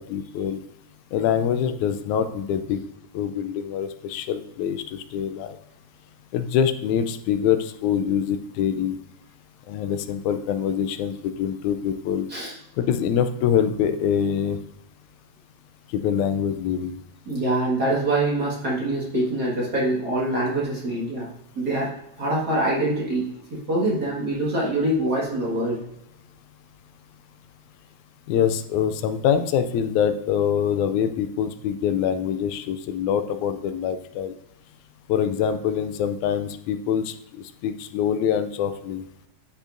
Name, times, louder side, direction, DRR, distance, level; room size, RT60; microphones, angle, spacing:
voice 1, 0.1-0.6 1.1-2.8 3.1-5.6 6.3-9.0 9.7-12.3 12.8-14.6 15.9-17.0 28.3-34.3 35.1-39.0, left 8 dB, 85° left, 10 dB, 2.0 m, -24 dB
voice 2, 17.3-21.3 21.6-21.9 22.2-25.8, right 1 dB, 40° right, -5 dB, 1.8 m, -24 dB
10.5 x 5.6 x 2.5 m, 0.83 s
omnidirectional pair, 3.4 m